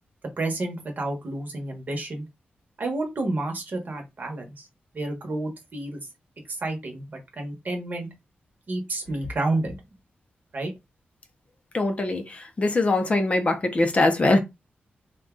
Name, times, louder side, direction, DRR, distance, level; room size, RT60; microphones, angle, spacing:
voice 1, 0.4-2.3 2.8-4.7 4.9-6.0 6.5-8.1 8.7-9.7 10.5-10.7, right 2 dB, 45° right, 1.0 m, -30 dB
voice 2, 11.7-14.4, left 2 dB, 35° left, 0.5 m, -22 dB
2.6 x 2.2 x 3.6 m
wide cardioid pair, 125°, 4 cm